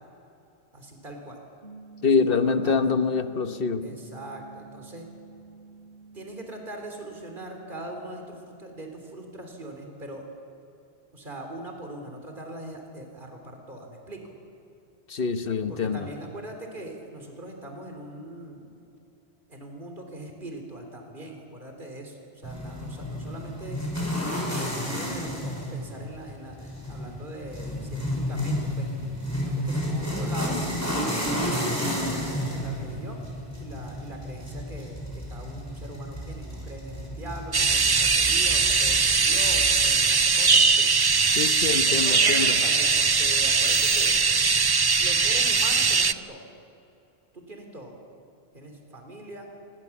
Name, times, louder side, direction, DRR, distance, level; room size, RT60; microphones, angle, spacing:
voice 1, 0.7-1.4 2.0-2.8 3.8-5.1 6.1-10.3 11.1-14.3 15.7-18.7 19.5-23.8 24.2-28.9 29.4-30.6 31.1-33.3 33.6-40.9 41.8-44.1 45.0-46.5 47.3-48.0 48.5-49.5, right 1 dB, 55° right, 3 dB, 3.7 m, -41 dB
sound 1, 1.6-8.0, right 4 dB, 75° right, 4.4 m, -48 dB
voice 2, 2.0-3.9 15.1-16.1 41.3-42.5, left 5 dB, 60° left, 9 dB, 1.3 m, -25 dB
sound 2, 22.4-39.8, equal, 15° left, 6.4 m, -32 dB
sound 3, 37.5-46.1, right 4 dB, 30° right, 0.5 m, -21 dB
27.5 x 23.5 x 7.2 m, 2.8 s
omnidirectional pair, 1.0 m